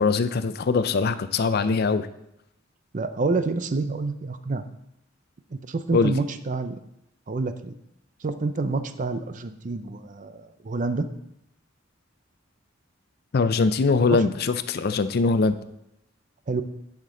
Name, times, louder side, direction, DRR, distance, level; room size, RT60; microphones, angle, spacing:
voice 1, 0.0-2.1 5.9-6.2 13.3-15.6, left 4 dB, 50° left, 12 dB, 0.5 m, -22 dB
voice 2, 2.9-4.6 5.5-6.8 7.3-7.7 8.2-11.1 14.1-14.2 16.5-16.6, right 3 dB, 40° right, 10 dB, 0.5 m, -28 dB
10.0 x 5.9 x 3.8 m, 0.81 s
head